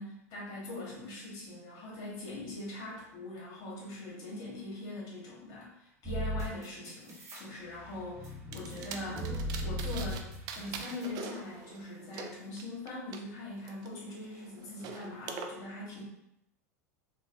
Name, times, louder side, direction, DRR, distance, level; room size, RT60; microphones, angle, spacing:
voice 1, 0.0-9.3 9.6-10.3 10.5-16.0, left 2 dB, 55° left, -4 dB, 1.5 m, -42 dB
sound 1, 6.0-7.4 7.8-11.1, equal, 35° right, 0.9 m, -37 dB
sound 2, 8.5-10.2 10.5-13.2 13.7-15.5, right 6 dB, 50° right, 0.4 m, -44 dB
3.2 x 2.7 x 2.6 m, 0.83 s
hypercardioid pair, 90°, 9 cm